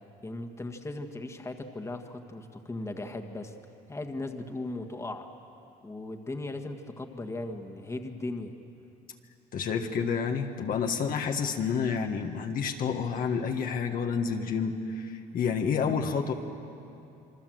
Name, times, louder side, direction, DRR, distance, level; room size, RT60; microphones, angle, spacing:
voice 1, 0.2-3.5 3.9-5.3 5.8-8.5, left 2 dB, 15° left, 5 dB, 1.7 m, -37 dB
voice 2, 9.5-16.3, left 6 dB, 55° left, 4 dB, 1.6 m, -29 dB
27.5 x 23.5 x 7.8 m, 2.7 s
cardioid pair, 110°, 17 cm